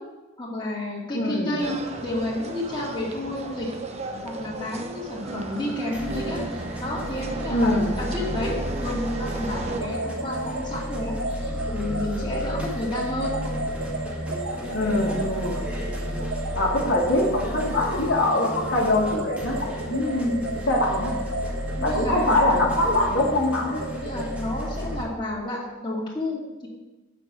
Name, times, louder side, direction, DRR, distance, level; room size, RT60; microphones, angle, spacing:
voice 1, 0.4-3.7 4.2-13.4 16.9-17.0 21.8-22.7 23.9-26.7, left 1 dB, 20° left, -5 dB, 2.3 m, -31 dB
voice 2, 1.1-1.5 7.5-7.9 14.7-15.6 16.5-21.1 21.8-23.8, left 1 dB, 65° left, -3 dB, 1.8 m, -23 dB
sound 1, 1.6-9.8, right 2 dB, 30° right, 0.8 m, -35 dB
sound 2, 5.2-25.0, equal, 5° right, 1.8 m, -33 dB
sound 3, 9.8-24.4, right 2 dB, 75° right, 1.5 m, -33 dB
8.9 x 6.2 x 6.1 m, 1.1 s
head